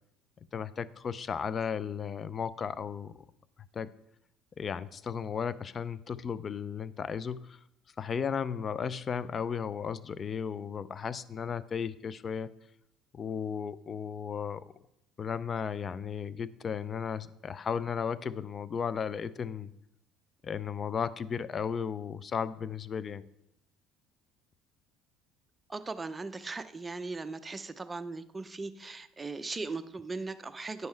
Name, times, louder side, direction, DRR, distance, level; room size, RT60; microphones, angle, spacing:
voice 1, 0.5-3.2 3.7-3.9 4.6-7.6 8.0-12.5 13.1-14.6 15.2-19.7 20.4-23.2, left 7 dB, 35° left, 17 dB, 0.4 m, -35 dB
voice 2, 25.7-30.9, right 3 dB, 20° right, 10 dB, 0.6 m, -38 dB
9.5 x 5.4 x 4.5 m, 0.80 s
supercardioid pair, 95°, 0 cm